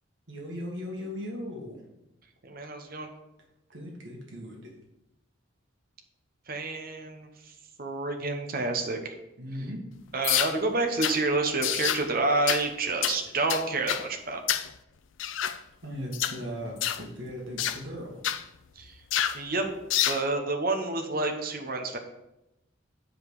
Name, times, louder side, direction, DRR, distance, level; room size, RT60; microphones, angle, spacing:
voice 1, 0.3-1.8 3.7-4.7 9.4-10.0 15.8-18.2, equal, 65° right, -1 dB, 1.8 m, -38 dB
voice 2, 2.4-3.1 6.5-7.3 7.8-9.1 10.1-14.4 18.8-18.9 19.3-19.7 20.1-22.0, right 3 dB, 45° right, 4 dB, 0.9 m, -29 dB
sound 1, 10.2-10.5 11.0-11.2 11.6-12.0 12.5-12.6 13.0-13.2 13.5-14.0 14.5-14.7 15.2-15.6 16.1-16.4 16.8-17.0 17.6-17.8 18.2-18.4 19.1-19.4 19.9-20.2, left 11 dB, 70° left, 0.4 m, -27 dB
8.0 x 5.2 x 4.8 m, 0.90 s
head